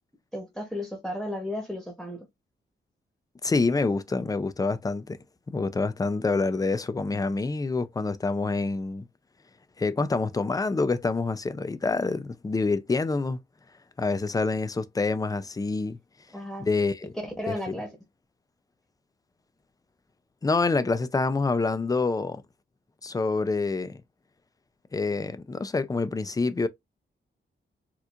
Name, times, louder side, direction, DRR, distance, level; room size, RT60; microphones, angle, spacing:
voice 1, 0.3-2.3 16.3-16.7 17.4-17.9, left 1 dB, ahead, 1.0 m, -34 dB
voice 2, 3.4-5.2 5.5-9.1 9.8-13.4 14.0-16.0 16.6-17.1 17.5-17.7 20.4-22.4 23.0-24.0 24.9-26.7, left 3 dB, 20° left, 0.4 m, -27 dB
4.3 x 2.4 x 2.4 m
wide cardioid pair, 115°, 19 cm